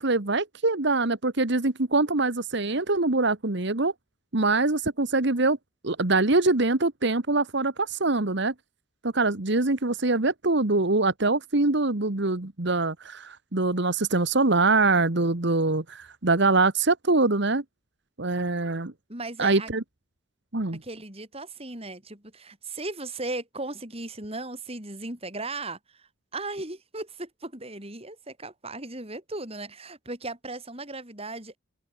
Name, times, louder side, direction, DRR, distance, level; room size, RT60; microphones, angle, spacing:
voice 1, 0.0-3.9 4.3-5.6 5.8-8.5 9.0-17.6 18.2-18.9 19.4-19.8 20.5-20.8, right 3 dB, 60° right, 1.5 m, -24 dB
voice 2, 19.1-19.7 20.7-31.6, right 2 dB, 30° right, 7.0 m, -37 dB
open air
head